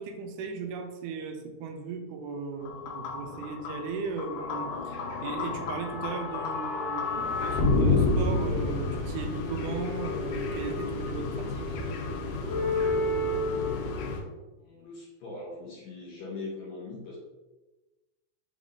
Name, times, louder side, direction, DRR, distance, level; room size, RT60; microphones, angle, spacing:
voice 1, 0.0-11.8, right 4 dB, 80° right, 4 dB, 2.1 m, -37 dB
sound 1, 2.6-14.2, left 3 dB, 90° left, 2.3 m, -29 dB
voice 2, 14.6-17.2, left 3 dB, 70° left, -3 dB, 1.7 m, -41 dB
5.4 x 2.5 x 3.6 m, 1.1 s
omnidirectional pair, 3.7 m